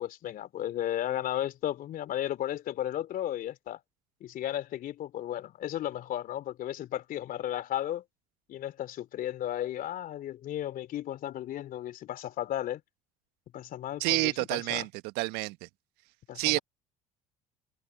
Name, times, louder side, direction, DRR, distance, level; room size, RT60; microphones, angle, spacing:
voice 1, 0.0-3.8 4.2-8.0 8.5-12.8 13.5-14.8 16.3-16.6, left 12 dB, 50° left, 3.1 m, -34 dB
voice 2, 14.0-14.9 15.2-15.7 16.3-16.6, right 24 dB, 65° right, 1.4 m, -28 dB
hypercardioid pair, 60°, 18 cm